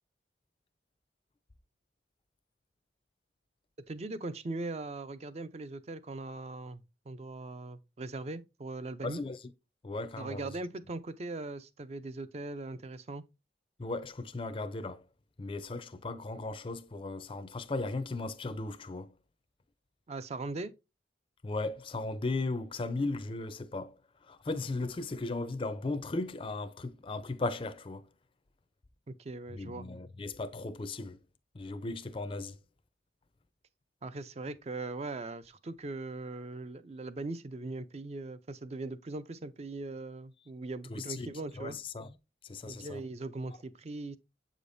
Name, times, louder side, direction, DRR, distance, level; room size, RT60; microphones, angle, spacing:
voice 1, 3.9-9.2 10.2-13.2 20.1-20.7 29.1-29.9 34.0-41.8 42.6-44.2, right 2 dB, 35° right, 0.4 m, -40 dB
voice 2, 9.0-9.4 9.8-10.5 13.8-15.0 15.4-19.1 21.4-24.0 24.3-28.1 29.5-31.2 31.5-32.6 40.9-41.3 41.6-42.1 42.5-43.0, left 2 dB, 30° left, 0.4 m, -36 dB
7.6 x 5.0 x 2.6 m
head